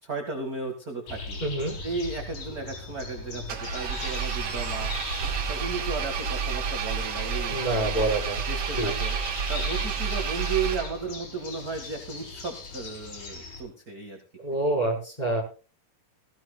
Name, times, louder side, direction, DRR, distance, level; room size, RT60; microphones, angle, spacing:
voice 1, 0.0-1.4 1.8-4.9 5.5-8.1 8.5-9.2 9.5-14.2, right 4 dB, 35° right, 4 dB, 1.8 m, -34 dB
sound 1, 1.1-13.6, left 3 dB, 60° left, 5.2 m, -40 dB
voice 2, 1.4-1.7 7.5-8.4 8.8-8.9 14.4-15.4, right 1 dB, 10° left, 0 dB, 4.9 m, -27 dB
Engine, 3.5-11.2, right 6 dB, 50° right, 2.3 m, -30 dB
19.0 x 16.0 x 2.4 m, 0.35 s
omnidirectional pair, 4.0 m